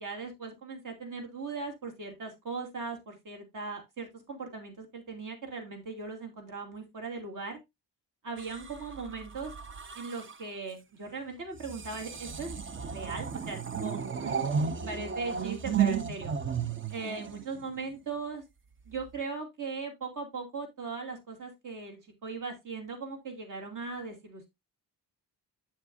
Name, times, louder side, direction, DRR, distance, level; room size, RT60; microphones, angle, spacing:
voice 1, 0.0-7.6 8.2-9.5 9.9-16.3 16.9-18.4 18.9-24.5, right 4 dB, 50° right, 2 dB, 2.6 m, -39 dB
sound 1, 8.4-10.5 11.5-18.0 18.9-19.2, right 7 dB, 30° right, 0.6 m, -34 dB
8.6 x 7.3 x 2.6 m, 0.20 s
cardioid pair, 135°, 40 cm